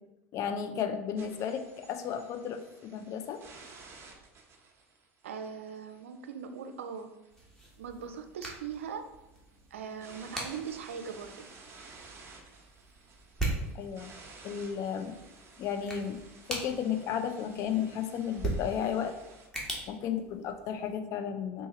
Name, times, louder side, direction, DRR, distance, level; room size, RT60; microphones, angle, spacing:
voice 1, 0.3-3.4 13.7-14.1 14.4-15.2 15.6-16.2 16.5-19.1 19.9-21.7, left 8 dB, 50° left, 7 dB, 0.5 m, -33 dB
sound 1, 1.2-19.5, right 4 dB, 40° right, 0.9 m, -55 dB
voice 2, 5.2-7.1 7.8-9.1 9.7-11.5, right 6 dB, 85° right, 7 dB, 0.4 m, -40 dB
sound 2, 7.3-21.0, right 2 dB, 5° left, 1.4 m, -41 dB
3.7 x 2.8 x 3.8 m, 0.96 s
hypercardioid pair, 90°, 7 cm